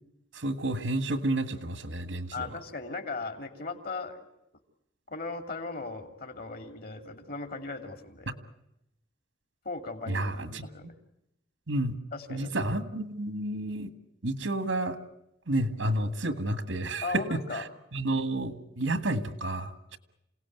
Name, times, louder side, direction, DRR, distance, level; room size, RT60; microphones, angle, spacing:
voice 1, 0.3-2.6 8.3-8.4 10.1-10.9 11.7-12.0 12.3-13.9 14.2-15.0 15.5-17.6 17.9-20.0, right 1 dB, 90° right, 11 dB, 1.8 m, -30 dB
voice 2, 2.3-4.3 5.1-8.3 9.6-10.9 12.1-12.6 17.0-17.6, left 3 dB, 55° left, 7 dB, 2.9 m, -37 dB
28.0 x 18.0 x 9.4 m, 0.84 s
head